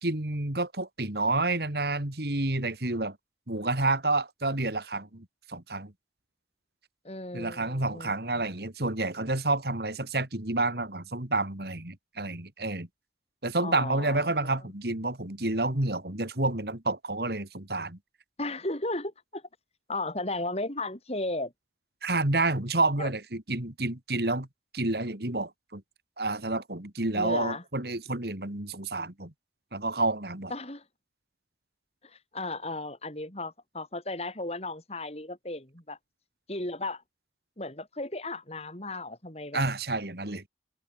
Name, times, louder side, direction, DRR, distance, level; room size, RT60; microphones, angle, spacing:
voice 1, 0.0-3.2 3.5-5.9 7.3-12.9 13.4-18.0 22.0-24.5 24.7-25.8 26.2-29.3 29.7-30.5 39.5-40.4, right 2 dB, 60° right, 2.9 m, -29 dB
voice 2, 7.0-8.5 13.6-14.6 18.4-19.4 19.9-21.5 23.0-23.1 27.2-27.6 30.5-30.8 32.0-36.0 36.5-37.0 37.6-39.6, left 2 dB, 35° left, 6.5 m, -35 dB
head